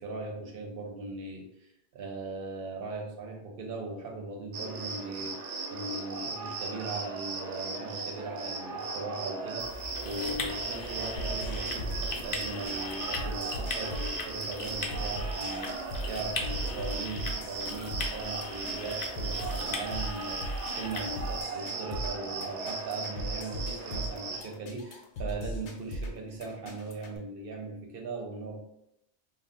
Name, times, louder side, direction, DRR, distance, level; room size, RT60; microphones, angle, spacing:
voice 1, 0.0-28.6, right 3 dB, 65° right, 1 dB, 0.7 m, -39 dB
Cricket, 4.5-24.4, right 3 dB, 90° right, 0.9 m, -37 dB
sound 1, 9.6-21.4, left 3 dB, 55° left, 0.5 m, -40 dB
sound 2, 11.2-27.2, right 1 dB, 80° left, 0.9 m, -38 dB
2.4 x 2.0 x 3.6 m, 0.78 s
omnidirectional pair, 1.2 m